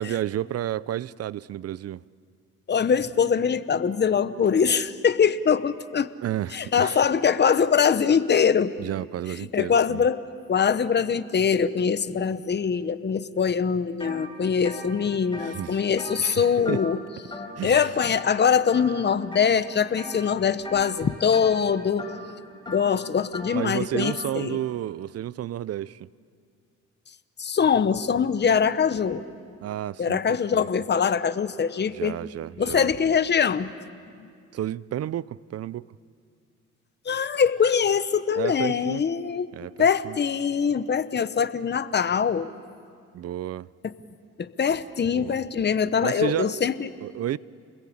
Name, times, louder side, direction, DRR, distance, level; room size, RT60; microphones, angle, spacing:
voice 1, 0.0-2.0 6.2-7.0 8.8-10.1 15.3-15.8 16.2-16.8 17.6-17.9 23.5-26.1 29.6-30.7 31.9-32.9 34.5-36.0 38.4-39.0 39.5-40.2 43.1-43.7 45.1-45.4 46.0-46.6 47.0-47.4, right 12 dB, 55° right, 0.6 m, -31 dB
voice 2, 2.7-6.1 6.5-8.7 9.5-10.2 10.5-17.0 17.6-22.1 22.7-24.6 27.4-29.2 30.0-32.1 32.6-33.7 34.2-34.3 37.1-39.5 39.8-42.5 43.8-43.9 44.4-46.9, left 7 dB, 35° left, 1.0 m, -23 dB
sound 1, 14.0-14.2 14.5-17.0 17.3-17.7 18.0-18.4 18.7-19.5 20.0-20.3 20.6-24.2, left 2 dB, 15° left, 5.0 m, -39 dB
28.5 x 21.0 x 8.7 m
cardioid pair, 90°, 30 cm